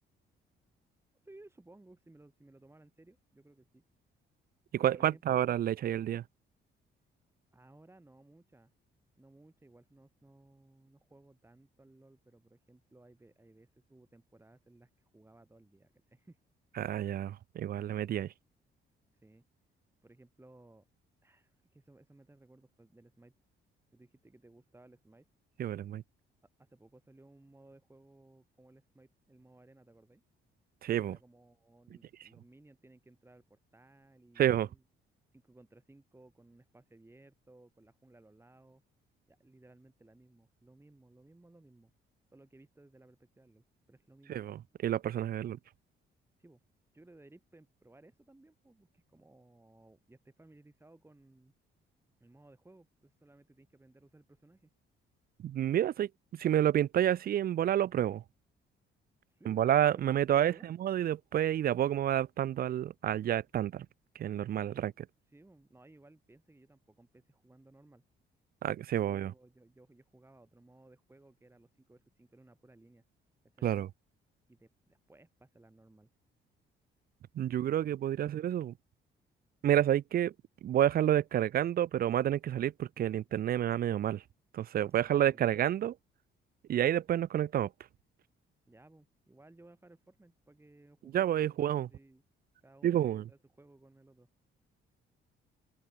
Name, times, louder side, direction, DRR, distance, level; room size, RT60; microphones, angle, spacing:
voice 1, 1.2-3.8 4.8-5.4 7.5-8.7 9.2-16.4 19.2-19.4 20.0-20.8 21.2-23.3 23.9-25.3 26.6-30.2 31.0-34.8 35.3-38.8 39.3-41.9 42.3-44.5 46.4-46.6 46.9-51.5 52.2-54.7 59.3-60.0 60.3-60.7 64.7-64.8 65.3-68.0 68.9-73.0 73.5-73.7 74.5-76.1 85.0-85.5 88.7-92.2 92.6-94.3, right 2 dB, 10° right, 3.5 m, -60 dB
voice 2, 4.8-6.2 16.8-18.3 25.6-26.0 30.8-31.2 34.4-34.7 44.3-45.6 55.4-58.2 59.5-60.5 60.8-63.9 64.2-64.9 68.6-69.3 73.6-73.9 77.4-78.7 79.6-80.3 80.6-84.2 84.5-85.9 86.7-87.7 91.1-91.9 92.8-93.2, right 11 dB, 50° right, 0.4 m, -29 dB
open air
cardioid pair, 90°, 20 cm